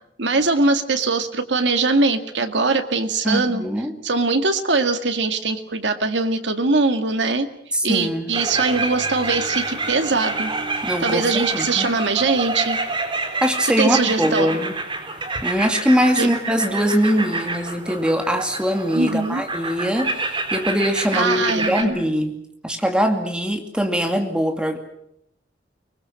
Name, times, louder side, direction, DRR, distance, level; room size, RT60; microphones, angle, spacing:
voice 1, 0.2-3.6 4.0-7.5 7.8-10.5 11.0-12.8 13.6-14.6 16.2-16.3 18.9-19.4 21.1-22.0, right 3 dB, 90° right, 7 dB, 2.1 m, -21 dB
voice 2, 3.2-4.0 7.7-8.3 10.8-11.9 13.4-14.7 15.4-22.4 22.6-24.8, equal, 5° right, 5 dB, 2.4 m, -22 dB
sound 1, 8.3-21.8, right 3 dB, 30° right, 3.9 m, -28 dB
24.0 x 21.5 x 7.7 m, 0.75 s
head